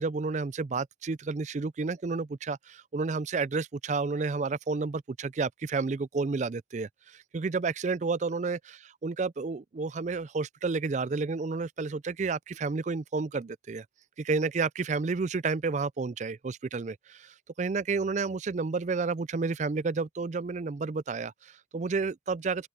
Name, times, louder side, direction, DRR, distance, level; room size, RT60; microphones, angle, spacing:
voice 1, 0.0-8.6 9.0-13.8 14.2-22.7, right 4 dB, 40° right, 0.4 m, -31 dB
open air
head